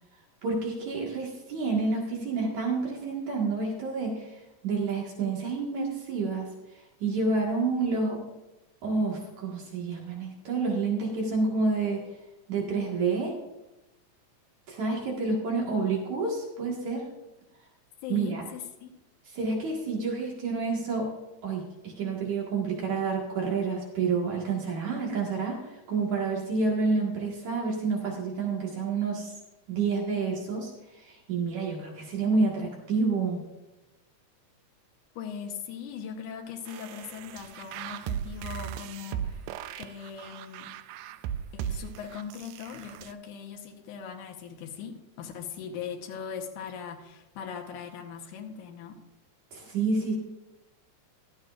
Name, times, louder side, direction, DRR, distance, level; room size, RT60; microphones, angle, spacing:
voice 1, 0.4-4.4 4.6-6.5 7.0-8.3 8.8-12.1 12.5-13.4 14.7-17.1 18.1-18.5 19.3-21.2 21.4-29.3 29.7-33.4 49.5-50.2, right 4 dB, 65° right, -2 dB, 3.1 m, -29 dB
voice 2, 18.0-18.9 35.2-39.5 39.8-40.7 41.5-49.0, left 7 dB, 75° left, 3 dB, 2.5 m, -40 dB
sound 1, 36.7-43.1, right 9 dB, 80° right, 2.0 m, -37 dB
15.5 x 12.0 x 2.5 m, 0.99 s
omnidirectional pair, 3.6 m